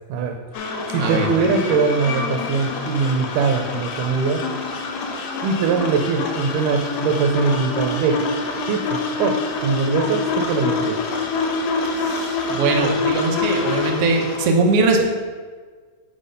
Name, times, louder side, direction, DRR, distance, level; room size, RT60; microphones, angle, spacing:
voice 1, 0.1-4.4 5.4-8.2 8.7-11.0, right 4 dB, 85° right, 3 dB, 2.2 m, -22 dB
sound 1, 0.5-14.5, left 3 dB, 75° left, 1.5 m, -26 dB
voice 2, 11.8-15.0, right 3 dB, 70° right, 2 dB, 1.5 m, -21 dB
7.5 x 4.3 x 5.0 m, 1.5 s
omnidirectional pair, 3.7 m